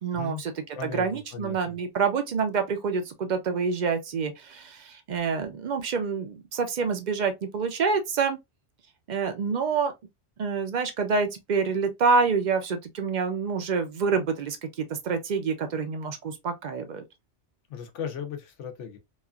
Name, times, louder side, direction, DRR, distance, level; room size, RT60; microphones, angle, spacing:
voice 1, 0.0-8.4 9.1-9.9 10.4-17.0, right 5 dB, 55° right, 0.5 m, -27 dB
voice 2, 0.7-1.1 1.3-1.7 17.7-19.0, left 7 dB, 80° left, 1.0 m, -36 dB
3.0 x 2.4 x 2.2 m
omnidirectional pair, 1.2 m